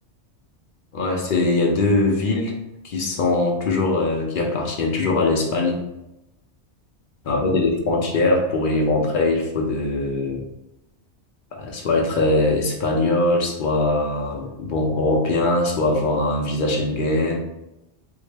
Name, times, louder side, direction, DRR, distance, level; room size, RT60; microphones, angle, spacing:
voice 1, 0.9-2.5 2.8-5.8 7.2-10.4 11.5-17.4, left 2 dB, 55° left, 0 dB, 0.7 m, -21 dB
3.6 x 2.1 x 3.3 m, 0.91 s
omnidirectional pair, 1.2 m